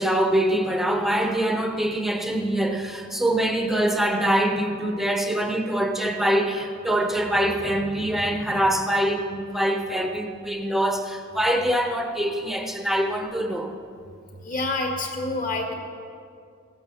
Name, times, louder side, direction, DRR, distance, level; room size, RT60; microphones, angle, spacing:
voice 1, 0.0-13.7, right 1 dB, ahead, 0.8 m, -24 dB
voice 2, 14.4-15.7, left 2 dB, 40° left, 2.1 m, -27 dB
15.5 x 9.9 x 7.0 m
head